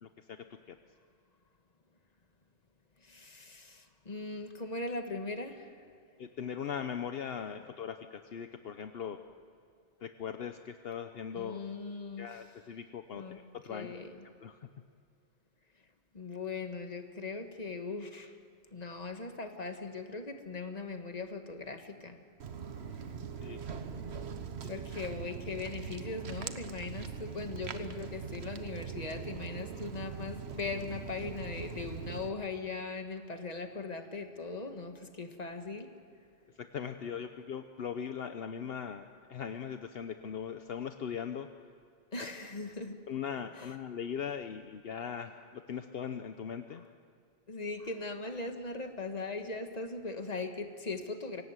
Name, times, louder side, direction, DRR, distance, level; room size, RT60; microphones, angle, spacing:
voice 1, 0.0-0.8 6.2-9.2 10.0-11.6 12.2-13.9 14.4-14.7 23.4-23.6 24.6-24.7 36.5-41.5 43.1-46.8, left 7 dB, 70° left, 8 dB, 1.0 m, -40 dB
voice 2, 3.0-5.9 11.3-12.3 13.2-13.4 13.7-14.2 16.1-18.4 18.7-22.2 24.7-36.0 42.1-43.0 43.6-43.7 47.5-51.4, left 3 dB, 40° left, 6 dB, 1.6 m, -39 dB
Walk footsteps, 22.4-32.3, right 6 dB, 80° right, 1.3 m, -41 dB
25.0 x 17.5 x 8.1 m, 2.4 s
omnidirectional pair, 1.1 m